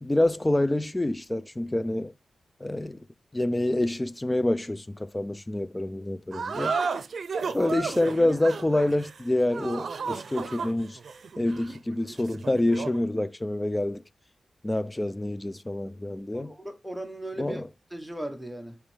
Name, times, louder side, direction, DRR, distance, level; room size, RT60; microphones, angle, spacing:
voice 1, 0.0-2.1 2.6-3.0 3.3-6.8 7.5-11.0 11.4-14.0 14.6-16.5 17.4-17.7, left 1 dB, 15° left, 0.4 m, -27 dB
sound 1, 6.3-13.0, right 5 dB, 65° right, 0.6 m, -33 dB
voice 2, 16.3-17.6 17.9-18.8, right 1 dB, ahead, 1.2 m, -37 dB
6.9 x 4.6 x 3.4 m
wide cardioid pair, 120°, 0 cm